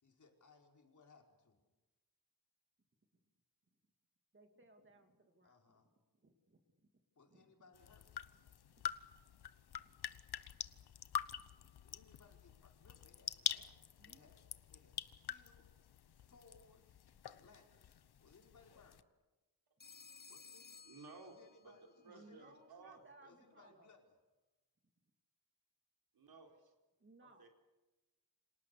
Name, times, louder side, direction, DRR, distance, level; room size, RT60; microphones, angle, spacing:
voice 1, 0.0-1.7 5.4-5.9 7.1-8.1 11.8-14.4 14.7-15.7 16.1-17.0 17.3-19.1 20.3-20.8 21.2-22.5 23.2-24.1 27.2-27.3, left 4 dB, 50° left, 1 dB, 4.8 m, -66 dB
voice 2, 4.3-5.8 6.2-6.6 7.3-7.5 8.8-8.9 11.6-11.7 14.0-14.3 22.0-23.9 27.0-27.5, right 2 dB, 30° right, 5 dB, 2.7 m, -64 dB
sound 1, 7.7-19.0, left 9 dB, 85° left, 1.1 m, -46 dB
Telephone, 19.8-21.9, left 5 dB, 25° left, 0.8 m, -58 dB
voice 3, 20.8-21.8 22.0-23.3 26.1-26.7 27.4-27.5, right 4 dB, 70° right, 2 dB, 4.5 m, -57 dB
29.5 x 26.5 x 6.8 m, 1.1 s
wide cardioid pair, 165°, 38 cm